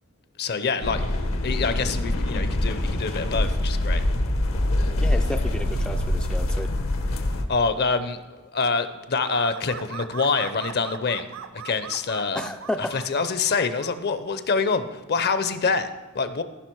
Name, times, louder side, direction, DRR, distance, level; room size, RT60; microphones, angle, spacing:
voice 1, 0.4-1.0 1.4-4.0 7.5-11.3 11.5-12.5 12.9-16.4, left 4 dB, 50° left, 12 dB, 0.7 m, -26 dB
sound 1, 0.8-7.5, left 1 dB, 70° left, 1.0 m, -24 dB
voice 2, 5.0-6.7 12.3-12.9, left 1 dB, 5° left, 6 dB, 0.3 m, -32 dB
sound 2, 9.2-13.9, right 6 dB, 65° right, 0.6 m, -39 dB
14.5 x 5.8 x 4.6 m, 1.2 s
head